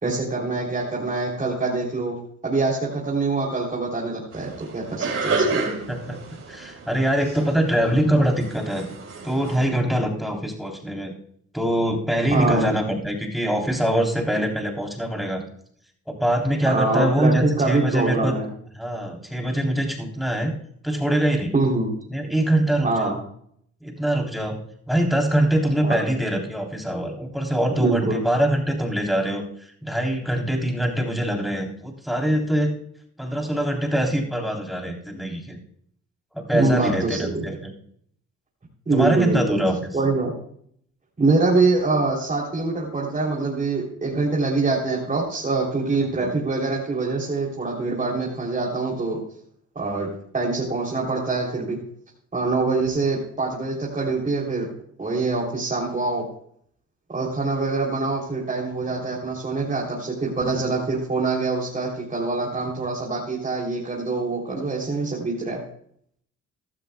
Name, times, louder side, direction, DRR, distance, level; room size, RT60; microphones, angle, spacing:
voice 1, 0.0-2.2 2.4-5.6 12.3-12.7 16.7-18.5 21.5-21.9 22.8-23.2 25.8-26.0 27.8-28.2 36.5-37.5 38.9-39.6 39.9-40.3 41.2-49.2 49.7-50.1 50.3-51.8 52.3-54.7 55.0-56.3 57.1-65.6, right 3 dB, 25° right, -4 dB, 3.4 m, -24 dB
sound 1, 4.3-9.6, right 3 dB, 55° right, 4.4 m, -30 dB
voice 2, 6.5-8.8 9.2-11.1 11.5-15.4 16.1-18.3 18.7-20.5 20.8-21.5 22.1-23.1 23.8-24.6 24.9-32.7 33.2-35.6 36.3-37.7 38.9-39.9 46.0-46.3, right 1 dB, ahead, 1 dB, 3.5 m, -23 dB
16.0 x 12.5 x 2.3 m, 0.65 s
cardioid pair, 90°, 30 cm